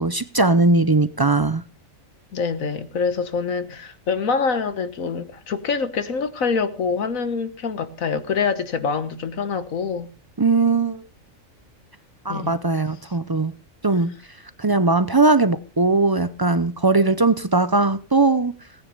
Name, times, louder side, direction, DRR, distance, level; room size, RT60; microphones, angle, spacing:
voice 1, 0.0-1.6 10.4-11.0 12.2-13.6 13.8-14.1 14.6-18.5, right 3 dB, 35° right, 0.3 m, -19 dB
voice 2, 2.3-10.1 12.3-12.5, left 5 dB, 80° left, 1.7 m, -25 dB
18.0 x 9.9 x 5.3 m
omnidirectional pair, 1.4 m